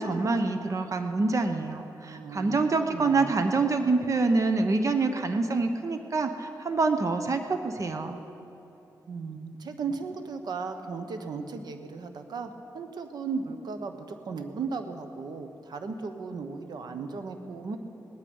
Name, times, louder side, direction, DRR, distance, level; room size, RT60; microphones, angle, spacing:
voice 1, 0.0-8.2, right 3 dB, 45° right, 7 dB, 0.9 m, -26 dB
voice 2, 2.0-3.4 9.1-17.8, right 4 dB, 75° right, 7 dB, 1.1 m, -36 dB
18.5 x 12.0 x 5.5 m, 3.0 s
cardioid pair, 85°, 7 cm